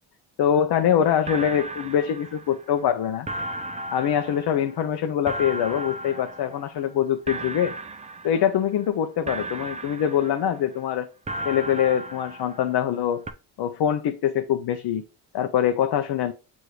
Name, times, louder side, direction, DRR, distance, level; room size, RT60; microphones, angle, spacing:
voice 1, 0.4-3.3 3.9-7.7 8.2-11.1 11.4-13.2 13.6-15.0 15.3-16.3, left 9 dB, 55° left, 0.6 m, -24 dB
sound 1, 0.8-0.9 1.3-2.9 3.3-7.0 7.3-8.9 9.3-10.9 11.3-13.0 13.3-13.4, right 1 dB, 15° right, 0.3 m, -36 dB
6.6 x 2.6 x 3.1 m
supercardioid pair, 65°, 49 cm